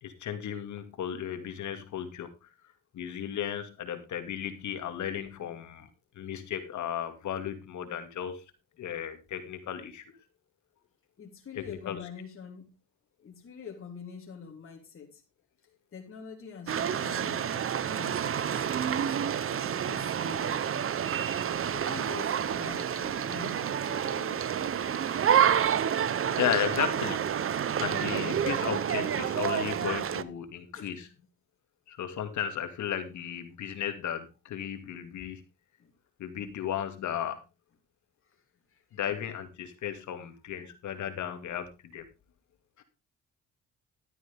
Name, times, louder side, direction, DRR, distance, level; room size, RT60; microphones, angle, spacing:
voice 1, 0.0-2.3 2.9-5.9 6.2-8.4 8.8-10.0 11.6-12.0 26.4-27.3 27.8-31.1 31.9-35.4 36.2-37.4 38.9-42.0 42.8-42.9, left 9 dB, 70° left, 8 dB, 2.4 m, -34 dB
voice 2, 11.2-12.8 13.2-15.2 15.9-19.2 19.6-20.9 21.7-24.6 30.7-30.9 35.8-35.9 38.2-38.4 38.7-39.0, left 6 dB, 45° left, 0 dB, 3.6 m, -46 dB
sound 1, 16.7-30.2, right 8 dB, 45° right, 0.9 m, -29 dB
12.5 x 9.5 x 3.5 m, 0.28 s
cardioid pair, 90°, 30 cm